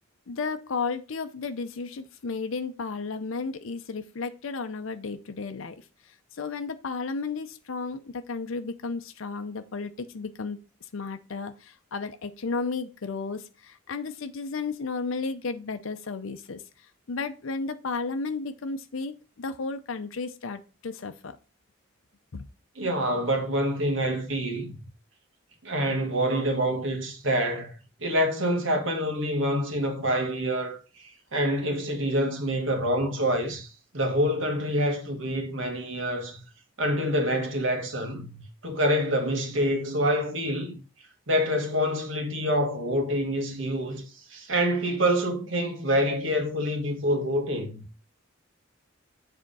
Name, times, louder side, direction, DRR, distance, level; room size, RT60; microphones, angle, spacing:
voice 1, 0.3-5.8 6.3-10.6 10.9-16.6 17.1-21.4 22.3-22.5, left 4 dB, 70° left, 0.6 m, -33 dB
voice 2, 22.8-24.7 25.6-27.7 28.0-33.7 33.9-36.4 36.8-40.8 41.3-44.0 44.3-47.8, equal, 65° right, 1.6 m, -26 dB
7.6 x 3.6 x 5.5 m
head